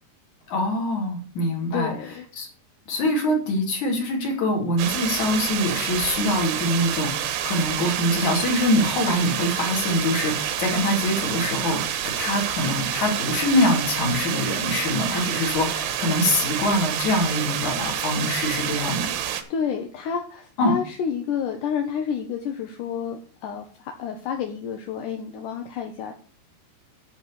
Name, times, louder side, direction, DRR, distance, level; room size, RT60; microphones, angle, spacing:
voice 1, 0.5-1.9 2.4-2.5 2.9-11.8 12.2-19.1 20.6-20.7, left 1 dB, 50° left, 1 dB, 3.5 m, -24 dB
voice 2, 1.7-2.3 19.2-26.1, left 7 dB, 75° left, 4 dB, 2.0 m, -30 dB
sound 1, 4.8-19.4, right 10 dB, 80° right, 3.1 m, -28 dB
11.5 x 4.2 x 8.0 m, 0.42 s
omnidirectional pair, 4.7 m